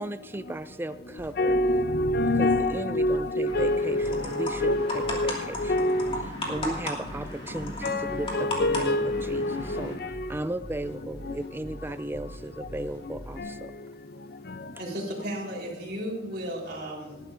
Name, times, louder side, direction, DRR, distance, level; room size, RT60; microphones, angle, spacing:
voice 1, 0.0-1.6 2.4-5.7 6.5-13.7, right 1 dB, 10° right, 0.4 m, -36 dB
sound 1, 1.2-13.4, equal, 15° left, 1.7 m, -44 dB
voice 2, 1.4-6.2 7.8-10.3 11.3-11.4 13.4-13.5, left 1 dB, 55° left, 0.6 m, -26 dB
sound 2, 3.5-9.9, left 1 dB, 30° left, 2.5 m, -35 dB
voice 3, 14.8-17.2, equal, 60° right, 4.0 m, -34 dB
19.5 x 11.5 x 2.6 m
head